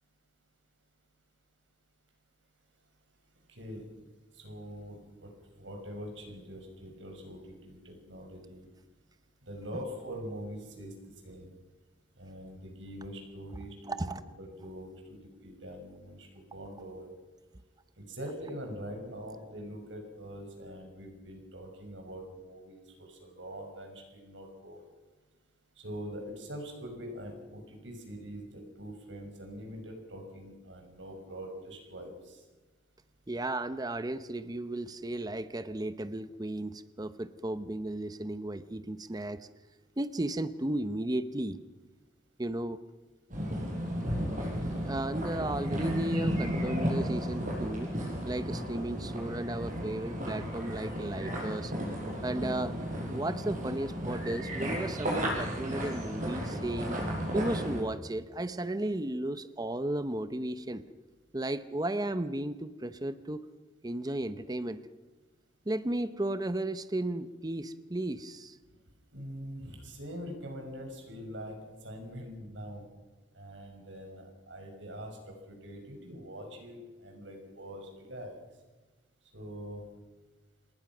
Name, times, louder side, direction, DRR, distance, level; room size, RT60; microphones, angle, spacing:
voice 1, 3.5-3.9 4.3-8.7 9.4-10.9 11.2-11.5 12.2-17.1 18.0-24.8 25.8-32.4 69.1-72.8 73.3-78.4 79.3-79.8, equal, 90° right, 3 dB, 6.2 m, -44 dB
voice 2, 13.8-14.2 33.3-39.5 40.0-41.6 42.4-42.8 44.8-47.9 48.2-51.7 52.2-52.8 53.1-57.0 57.3-60.8 61.3-63.4 63.8-64.8 65.7-68.6, right 1 dB, 20° right, 12 dB, 0.7 m, -34 dB
sound 1, 43.3-57.8, equal, 45° right, 6.6 m, -34 dB
27.5 x 19.5 x 6.2 m, 1.2 s
head